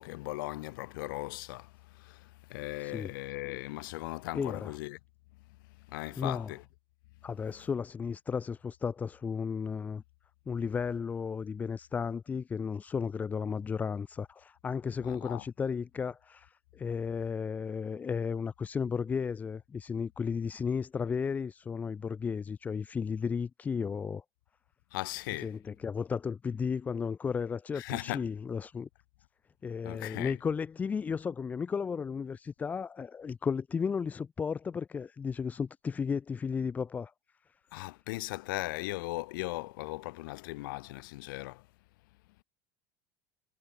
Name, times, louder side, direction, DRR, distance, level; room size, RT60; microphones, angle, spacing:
voice 1, 0.0-5.0 5.8-6.6 15.0-15.4 24.9-25.5 27.7-28.3 29.8-30.3 37.7-41.7, left 21 dB, 70° left, 4.5 m, -38 dB
voice 2, 2.8-3.1 4.3-4.7 6.2-6.5 7.2-10.0 10.5-24.2 25.4-28.9 29.6-37.1, left 6 dB, 15° left, 1.1 m, -34 dB
cardioid pair, 175°, 11 cm